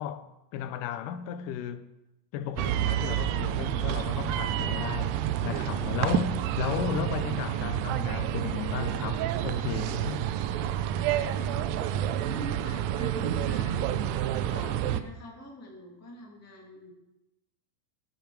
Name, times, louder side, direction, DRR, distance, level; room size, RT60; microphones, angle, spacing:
voice 1, 0.0-1.9 2.3-10.3, left 9 dB, 90° left, 2.2 m, -35 dB
sound 1, 2.6-15.0, right 11 dB, 85° right, 1.5 m, -29 dB
voice 2, 12.2-13.9 14.5-16.9, left 1 dB, 10° left, 0.8 m, -44 dB
10.5 x 9.2 x 4.5 m
omnidirectional pair, 3.6 m